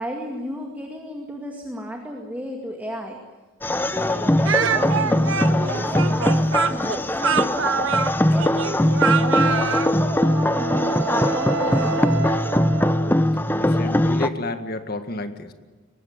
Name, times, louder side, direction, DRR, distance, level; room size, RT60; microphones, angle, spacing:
voice 1, 0.0-3.2 3.8-7.7 8.3-9.6 9.9-12.2, equal, 10° right, 1 dB, 2.3 m, -34 dB
sound 1, 3.6-14.3, left 1 dB, 10° left, 0.7 m, -21 dB
Speech, 4.4-9.9, right 6 dB, 75° right, 1.2 m, -24 dB
Wind instrument woodwind instrument, 9.3-13.3, right 6 dB, 55° right, 1.5 m, -31 dB
voice 2, 13.6-15.5, left 1 dB, 50° left, 7 dB, 1.9 m, -30 dB
24.0 x 19.5 x 8.8 m, 1.4 s
head